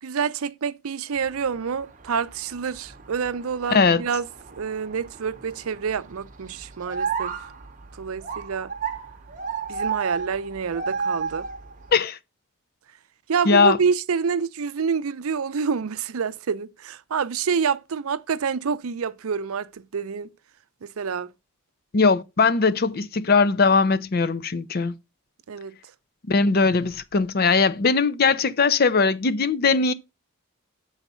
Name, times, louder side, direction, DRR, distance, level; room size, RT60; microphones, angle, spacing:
voice 1, 0.0-4.3 4.6-7.3 7.9-8.7 9.7-11.5 13.3-20.3 20.8-21.3 25.5-25.7, right 6 dB, 80° right, 0.5 m, -27 dB
sound 1, 1.1-12.0, right 5 dB, 35° right, 0.8 m, -34 dB
voice 2, 13.5-13.8 21.9-24.9 26.3-29.9, left 4 dB, 45° left, 0.5 m, -20 dB
7.1 x 4.0 x 5.5 m
head